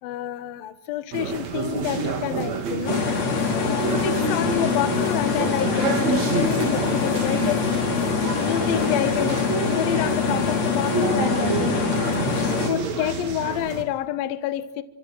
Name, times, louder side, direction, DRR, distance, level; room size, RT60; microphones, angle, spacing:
voice 1, 0.0-3.0 3.5-7.6 8.3-9.4 9.8-11.8 12.4-14.8, left 12 dB, 75° left, 2.2 m, -28 dB
sound 1, 1.1-13.8, right 5 dB, 45° right, 3.0 m, -29 dB
sound 2, 2.9-12.7, left 5 dB, 35° left, 3.6 m, -24 dB
27.5 x 25.5 x 7.9 m
omnidirectional pair, 6.0 m